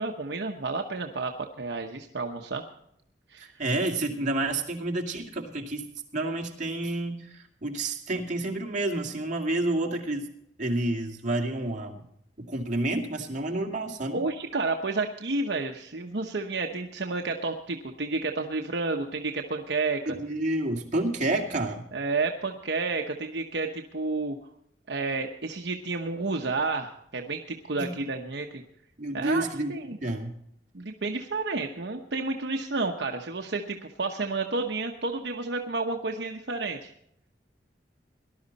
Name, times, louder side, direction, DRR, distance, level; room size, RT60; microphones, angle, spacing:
voice 1, 0.0-2.6 3.3-3.5 14.1-20.1 21.9-24.4 24.9-28.6 29.1-30.0 30.7-36.9, right 3 dB, 75° right, 3 dB, 1.0 m, -31 dB
voice 2, 3.4-5.8 6.1-10.3 10.6-12.0 12.4-14.2 20.1-21.8 27.8-27.9 29.0-30.4, right 2 dB, 45° right, 0 dB, 2.4 m, -29 dB
18.5 x 12.0 x 4.1 m, 0.73 s
head